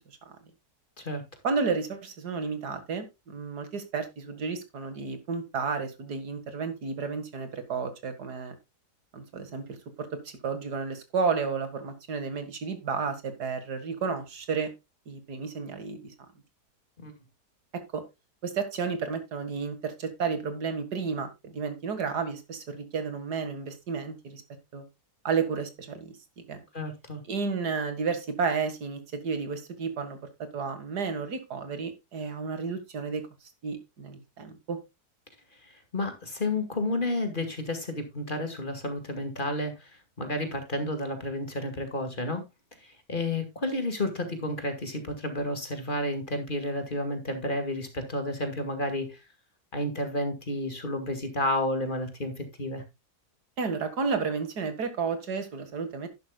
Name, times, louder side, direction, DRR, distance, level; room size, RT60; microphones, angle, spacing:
voice 1, 1.4-8.6 9.1-10.1 10.4-14.7 15.1-16.1 17.7-18.0 18.4-24.4 24.7-24.8 25.2-26.6 27.3-33.2 33.6-34.8 53.6-56.1, right 5 dB, 80° right, 9 dB, 2.4 m, -32 dB
voice 2, 26.7-27.2 35.6-39.9 40.2-42.4 42.8-49.2 49.7-52.8, left 1 dB, 30° left, 7 dB, 2.2 m, -31 dB
11.5 x 11.0 x 2.3 m, 0.23 s
omnidirectional pair, 1.7 m